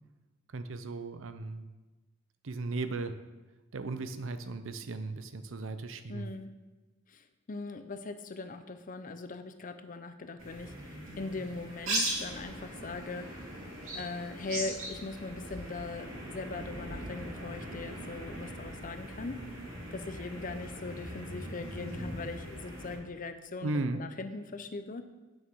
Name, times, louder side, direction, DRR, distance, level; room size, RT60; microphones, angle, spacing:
voice 1, 0.5-1.7 2.4-3.2 3.7-6.3 23.6-24.0, right 3 dB, 70° right, 10 dB, 0.6 m, -36 dB
voice 2, 6.1-6.5 7.1-13.4 13.9-19.4 19.9-25.0, left 3 dB, 40° left, 9 dB, 0.6 m, -40 dB
sound 1, 10.4-22.9, right 1 dB, 85° right, 2.8 m, -40 dB
9.0 x 6.3 x 4.7 m, 1.2 s
head